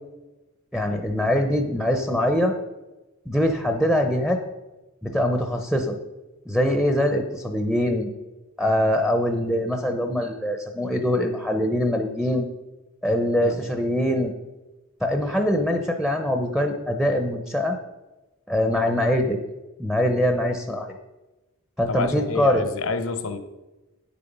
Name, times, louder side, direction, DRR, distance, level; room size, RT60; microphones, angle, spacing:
voice 1, 0.7-2.5 3.3-4.4 5.0-6.0 6.5-8.1 8.6-12.5 13.0-14.3 15.0-17.8 18.5-19.4 19.8-20.9 21.8-22.7, left 1 dB, ahead, 5 dB, 0.7 m, -23 dB
voice 2, 21.9-23.4, left 4 dB, 70° left, 10 dB, 0.8 m, -29 dB
9.4 x 6.9 x 5.3 m, 1.1 s
head